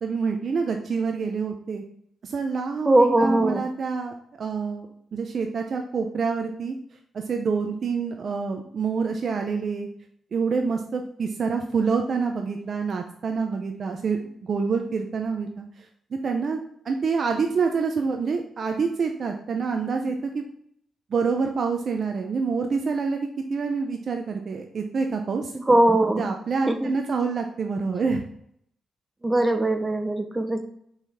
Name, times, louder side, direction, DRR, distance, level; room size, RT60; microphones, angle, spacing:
voice 1, 0.0-1.8 2.2-4.9 5.1-6.7 7.3-9.9 10.3-15.9 16.2-20.4 21.1-25.5 26.2-28.2, right 5 dB, 55° right, 4 dB, 0.6 m, -27 dB
voice 2, 2.9-3.6 25.5-26.3 26.7-26.9 29.2-30.6, right 1 dB, 20° right, 8 dB, 0.9 m, -20 dB
5.8 x 4.1 x 4.2 m, 0.70 s
cardioid pair, 65°, 0 cm